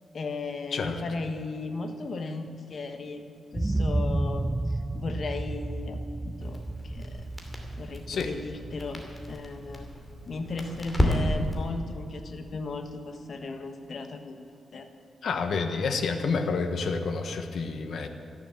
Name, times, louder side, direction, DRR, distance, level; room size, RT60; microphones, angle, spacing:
voice 1, 0.1-7.2 7.8-9.0 9.3-9.9 10.3-14.4 14.7-14.9, left 3 dB, 50° left, 6 dB, 1.4 m, -36 dB
sound 1, 3.5-11.4 11.8-11.9, right 2 dB, 15° right, 0.4 m, -32 dB
Crackle, 6.4-11.7, equal, 10° left, 2.6 m, -32 dB
voice 2, 15.2-18.1, left 4 dB, 65° left, 6 dB, 1.2 m, -29 dB
14.5 x 11.0 x 7.4 m, 2.6 s
cardioid pair, 115°, 0 cm